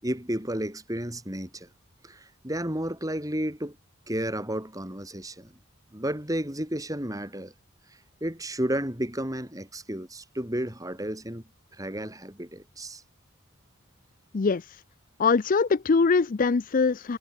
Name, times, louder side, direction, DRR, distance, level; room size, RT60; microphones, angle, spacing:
voice 1, 0.0-1.7 2.0-3.8 4.1-5.5 5.9-7.5 8.2-11.4 11.7-13.0, right 1 dB, 15° right, 5.0 m, -32 dB
voice 2, 14.3-14.7 15.2-17.2, left 4 dB, 40° left, 0.4 m, -22 dB
head